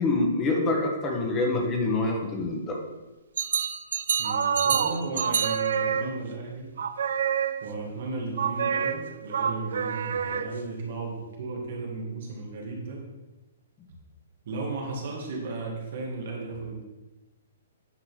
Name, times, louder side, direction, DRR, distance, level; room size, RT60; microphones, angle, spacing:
voice 1, 0.0-2.8, left 2 dB, 15° left, 1 dB, 1.1 m, -26 dB
sound 1, 3.4-6.4 6.8-7.8 8.4-10.8, right 7 dB, 65° right, 0.5 m, -27 dB
voice 2, 4.2-6.7 7.6-13.0 14.4-16.8, right 3 dB, 45° right, -1 dB, 2.0 m, -35 dB
9.8 x 3.9 x 6.3 m, 1.1 s
hypercardioid pair, 175°, 0 cm